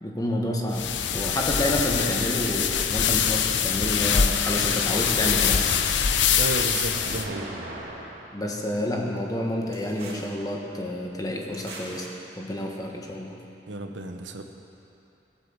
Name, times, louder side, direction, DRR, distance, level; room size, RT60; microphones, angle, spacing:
voice 1, 0.0-5.6 8.3-12.1 12.4-13.4, left 1 dB, 20° left, 0 dB, 1.4 m, -29 dB
sound 1, 0.7-7.3, left 7 dB, 80° left, 0.7 m, -24 dB
sound 2, 4.4-5.9 6.8-8.3 9.7-10.3 11.5-12.1, right 1 dB, 55° right, 3.1 m, -38 dB
voice 2, 6.4-7.5 13.7-14.4, right 2 dB, 85° right, 5 dB, 1.1 m, -32 dB
17.5 x 8.6 x 7.5 m, 2.8 s
head